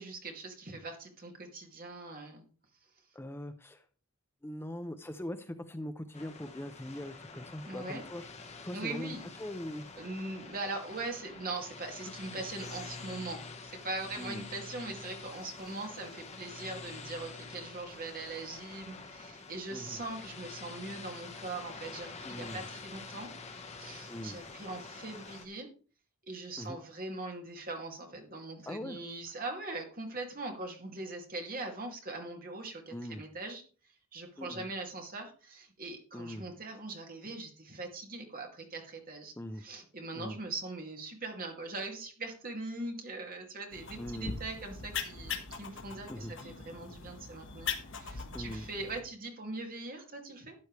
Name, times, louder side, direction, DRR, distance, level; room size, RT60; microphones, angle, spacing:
voice 1, 0.0-2.5 7.7-8.0 8.7-9.3 10.0-23.3 23.7-25.7 26.3-33.6 34.1-50.5, right 2 dB, 40° right, 2 dB, 2.4 m, -41 dB
voice 2, 3.1-3.8 4.4-8.3 8.6-9.9 14.2-14.5 19.7-20.0 22.2-22.7 24.1-24.4 26.6-26.8 28.7-29.0 32.9-33.2 34.4-34.7 36.1-36.5 39.4-39.6 40.2-40.4 44.0-44.4 46.1-46.3 48.3-48.7, left 1 dB, 10° left, 8 dB, 0.5 m, -41 dB
sound 1, 6.1-25.5, left 4 dB, 30° left, 1.4 m, -47 dB
sound 2, 43.7-49.0, left 6 dB, 60° left, 1.5 m, -41 dB
12.5 x 9.5 x 3.3 m, 0.38 s
head